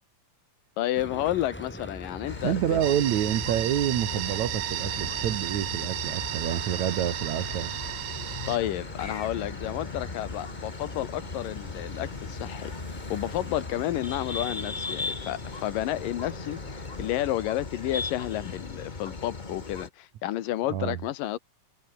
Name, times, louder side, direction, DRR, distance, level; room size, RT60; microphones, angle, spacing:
voice 1, 0.8-2.8 8.5-12.8 13.1-21.4, left 13 dB, 85° left, 2.9 m, -31 dB
sound 1, 0.9-17.2, left 1 dB, 5° left, 2.1 m, -45 dB
sound 2, 2.3-19.9, left 3 dB, 45° left, 0.6 m, -38 dB
voice 2, 2.4-7.7 20.7-21.0, right 11 dB, 65° right, 2.6 m, -28 dB
sound 3, 2.8-8.6, right 15 dB, 80° right, 2.5 m, -33 dB
omnidirectional pair, 3.8 m